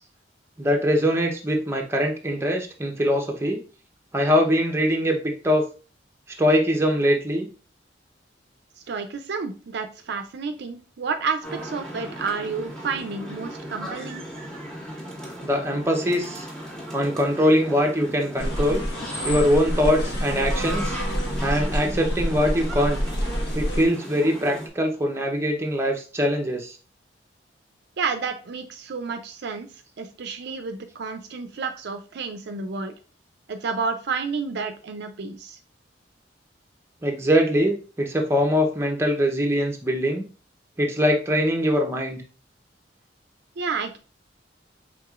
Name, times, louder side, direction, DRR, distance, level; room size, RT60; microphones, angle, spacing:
voice 1, 0.6-3.6 4.1-5.6 6.4-7.5 15.4-16.5 16.9-18.8 19.2-21.0 21.4-23.0 23.5-26.8 37.0-40.2 40.8-42.2, equal, 15° right, 1 dB, 0.7 m, -22 dB
voice 2, 8.9-14.2 28.0-29.7 30.0-32.9 33.5-35.6 43.6-44.0, right 5 dB, 65° right, 7 dB, 0.5 m, -30 dB
sound 1, 11.4-24.7, equal, 5° left, 1.3 m, -37 dB
sound 2, 18.4-23.8, equal, 60° left, 1.2 m, -27 dB
4.7 x 3.6 x 2.4 m, 0.35 s
head